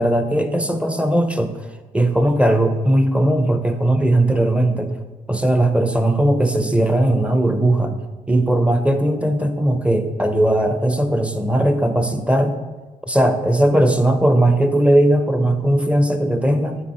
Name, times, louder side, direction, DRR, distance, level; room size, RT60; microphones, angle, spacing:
voice 1, 0.0-1.6 1.9-4.9 5.3-8.0 8.3-12.6 13.1-16.8, right 1 dB, 5° right, 7 dB, 0.7 m, -18 dB
8.4 x 3.6 x 4.3 m, 1.3 s
cardioid pair, 60°, 16 cm